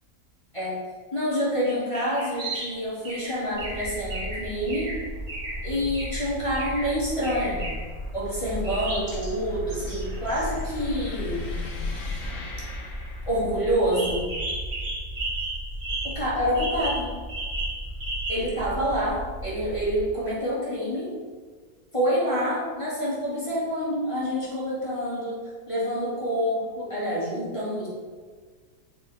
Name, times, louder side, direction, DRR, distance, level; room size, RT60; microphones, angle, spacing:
voice 1, 1.1-4.9 5.6-7.7 8.1-11.5 13.3-14.3 16.0-17.1 18.3-21.1 21.9-25.4 25.7-27.9, equal, 20° left, -8 dB, 2.0 m, -27 dB
sound 1, 1.6-2.8 3.0-5.6 5.9-6.2 6.5-6.9 7.2-7.8 8.6-9.3 9.7-11.1 13.9-16.3 16.5-18.6, right 2 dB, 65° right, 2.2 m, -34 dB
sound 2, 2.4-13.8, left 3 dB, 60° left, 1.3 m, -40 dB
sound 3, 3.5-20.1, right 1 dB, ahead, 0.9 m, -36 dB
5.9 x 4.5 x 4.9 m, 1.5 s
omnidirectional pair, 1.6 m